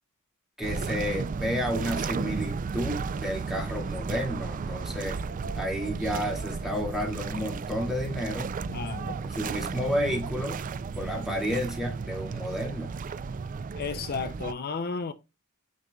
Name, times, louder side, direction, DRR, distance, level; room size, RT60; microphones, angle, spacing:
voice 1, 0.6-5.2 5.6-8.5 9.2-10.6 11.0-13.0, equal, ahead, 2.1 m, -31 dB
sound 1, 0.6-14.5, right 4 dB, 40° right, 0.3 m, -34 dB
voice 2, 8.7-9.2 13.8-15.1, left 5 dB, 45° left, 0.5 m, -33 dB
9.4 x 5.0 x 2.3 m
head